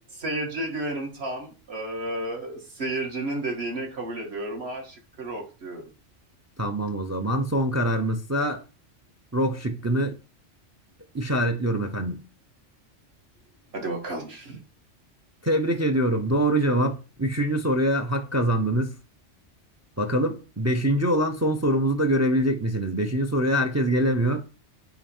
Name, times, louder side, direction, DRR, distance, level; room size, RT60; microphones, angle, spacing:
voice 1, 0.1-5.9 13.7-14.6, right 1 dB, 60° right, 1.9 m, -32 dB
voice 2, 6.6-8.6 9.3-10.1 11.1-12.2 15.4-18.9 20.0-24.4, right 1 dB, 20° right, 0.4 m, -24 dB
9.0 x 3.1 x 4.4 m
omnidirectional pair, 1.2 m